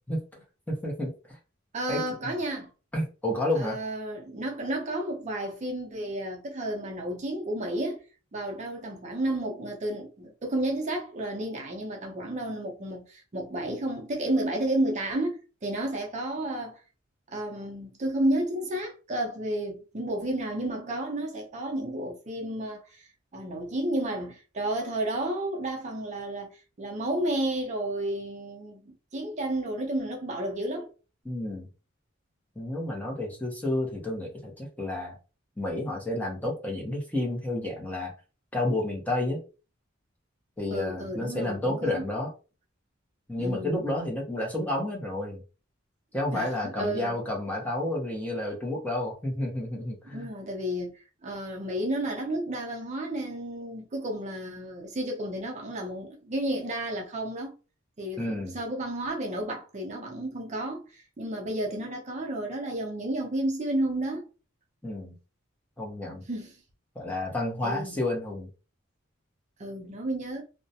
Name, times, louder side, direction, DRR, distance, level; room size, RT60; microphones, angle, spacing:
voice 1, 0.7-1.1 1.9-2.0 2.9-3.8 31.2-31.7 32.6-35.2 35.6-38.1 38.5-39.4 40.6-42.3 43.3-45.4 46.1-50.3 58.2-58.5 64.8-65.2 65.8-66.3 67.0-68.5, left 1 dB, 10° left, 0.7 m, -30 dB
voice 2, 1.7-2.7 3.5-8.0 8.3-16.8 17.3-30.9 40.7-42.1 43.4-44.0 46.3-47.2 50.1-57.5 58.0-64.3 66.3-66.6 67.6-68.0 69.6-70.4, right 1 dB, 35° right, 0.6 m, -32 dB
2.4 x 2.0 x 2.7 m
head